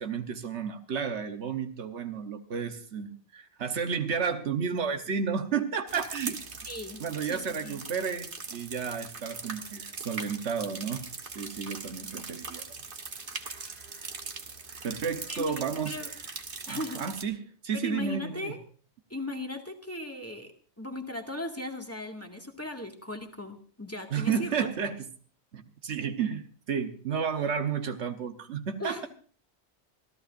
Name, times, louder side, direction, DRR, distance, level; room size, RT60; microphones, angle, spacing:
voice 1, 0.0-6.4 7.0-12.7 14.8-16.0 16.7-18.5 24.1-25.1 25.5-29.1, right 6 dB, 90° right, 6 dB, 1.3 m, -32 dB
sound 1, 5.9-17.2, right 4 dB, 50° right, 1.5 m, -41 dB
voice 2, 6.7-7.8 15.3-16.1 16.7-17.0 17.7-18.6 19.1-20.5 20.8-24.7 28.8-29.1, left 1 dB, 15° left, 3 dB, 2.0 m, -37 dB
27.0 x 14.5 x 2.5 m, 0.42 s
omnidirectional pair, 1.1 m